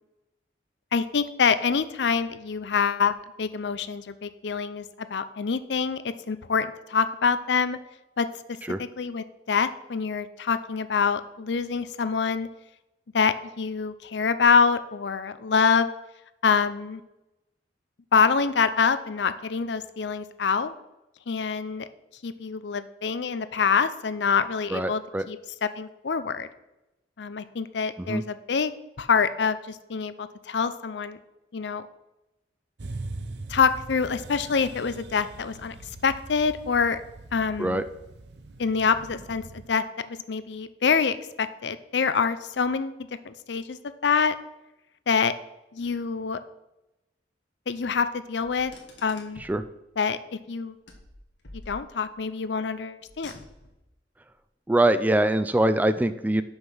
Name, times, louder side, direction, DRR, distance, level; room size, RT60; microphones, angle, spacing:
voice 1, 0.9-4.9 5.1-7.8 8.2-8.3 8.8-12.5 13.1-15.9 16.4-17.0 18.1-20.7 21.3-21.9 22.2-26.5 27.2-28.7 29.0-31.2 31.5-31.9 33.5-35.8 36.0-37.0 37.3-37.8 38.6-43.0 43.2-43.8 44.0-44.3 45.1-45.3 45.7-46.4 47.7-48.7 49.0-49.4 50.0-50.2 50.5-50.8 51.7-53.3, left 5 dB, 70° left, 13 dB, 0.5 m, -25 dB
voice 2, 24.7-25.3 28.1-28.2 37.6-37.8 49.5-49.6 54.7-56.4, right 1 dB, 10° right, 12 dB, 0.3 m, -23 dB
sound 1, 32.8-39.7, right 2 dB, 65° right, 0.7 m, -41 dB
Car, 48.4-49.6 50.9-52.2 53.0-53.9, left 2 dB, 85° left, 1.6 m, -47 dB
6.3 x 5.6 x 6.1 m, 0.93 s
head